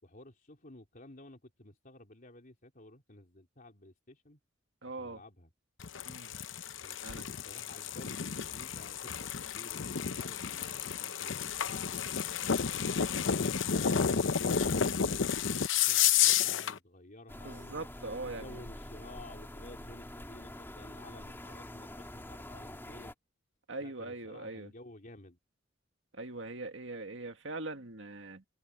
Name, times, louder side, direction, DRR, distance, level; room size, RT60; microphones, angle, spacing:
voice 1, 0.0-4.4 4.9-5.5 6.8-12.4 12.9-17.7 18.2-23.1 23.8-25.4, left 2 dB, 45° left, 3.6 m, -53 dB
voice 2, 4.8-5.2 6.1-6.3 7.0-7.2 17.4-18.6 23.7-24.7 26.1-28.4, right 2 dB, 70° right, 2.1 m, -41 dB
sound 1, 5.8-16.8, left 7 dB, 75° left, 0.8 m, -31 dB
sound 2, 17.3-23.1, left 1 dB, 10° left, 2.4 m, -46 dB
head